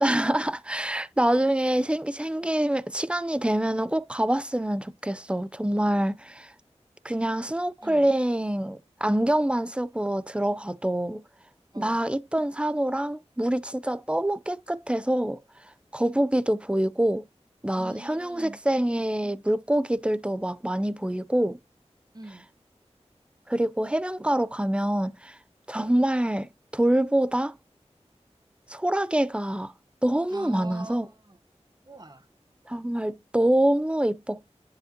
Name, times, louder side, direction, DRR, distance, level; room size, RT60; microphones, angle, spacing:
voice 1, 0.0-6.5 7.0-11.2 11.8-15.4 15.9-17.2 17.6-21.6 23.5-25.4 25.7-27.6 28.7-29.7 30.0-31.1 32.7-34.5, right 1 dB, 10° right, 0.6 m, -25 dB
voice 2, 17.8-18.6 22.1-22.4 30.3-31.4 31.9-32.3, right 2 dB, 35° right, 1.2 m, -43 dB
10.5 x 4.8 x 2.9 m
wide cardioid pair, 60°, 12 cm